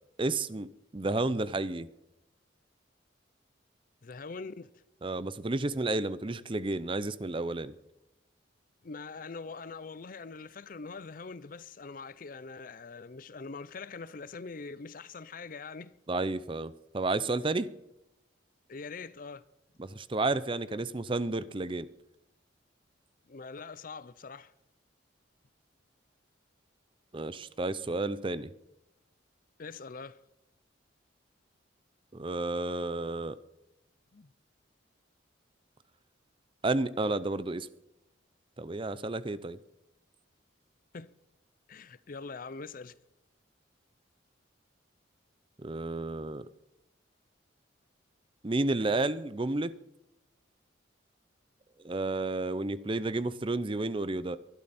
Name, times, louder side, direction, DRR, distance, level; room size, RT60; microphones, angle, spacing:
voice 1, 0.2-0.7 0.9-1.9 5.0-7.7 16.1-17.7 19.8-21.9 27.1-28.5 32.1-33.4 36.6-37.7 38.6-39.6 45.6-46.5 48.4-49.8 51.8-54.4, right 2 dB, 25° right, 0.6 m, -31 dB
voice 2, 4.0-4.7 8.8-16.0 18.7-19.4 23.3-24.5 29.6-30.2 34.1-34.3 40.9-41.1 41.7-42.9, left 4 dB, 45° left, 0.6 m, -43 dB
23.0 x 12.0 x 4.2 m
head